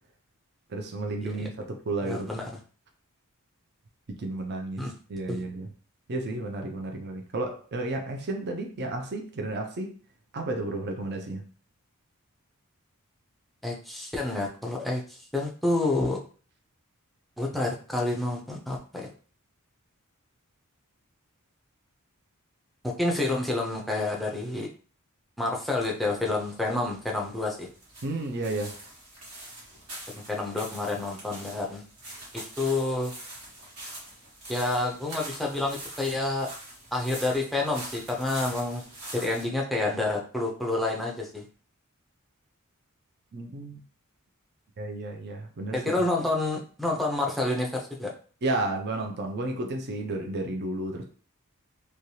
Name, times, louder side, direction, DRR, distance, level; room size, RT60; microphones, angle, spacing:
voice 1, 0.7-2.4 4.2-4.8 5.1-5.7 6.1-10.0 10.3-11.5 28.0-28.8 43.3-43.8 44.8-45.8 48.4-51.0, right 2 dB, 50° right, 0.5 m, -32 dB
voice 2, 2.0-2.5 4.8-4.9 5.3-5.4 13.6-16.2 17.4-19.1 23.0-24.7 25.4-27.7 30.1-31.8 32.6-33.1 34.5-36.5 36.9-38.8 39.2-41.4 45.7-48.1, left 2 dB, ahead, 0.5 m, -28 dB
sound 1, 25.8-39.4, right 1 dB, 75° right, 1.5 m, -44 dB
3.1 x 2.3 x 2.7 m
head